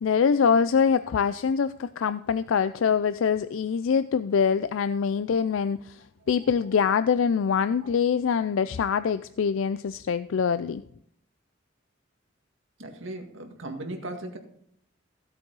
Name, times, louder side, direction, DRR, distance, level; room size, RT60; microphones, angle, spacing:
voice 1, 0.0-10.8, left 6 dB, 80° left, 13 dB, 0.4 m, -24 dB
voice 2, 12.8-14.4, right 1 dB, 80° right, 4 dB, 1.9 m, -37 dB
16.0 x 8.3 x 4.0 m, 0.68 s
head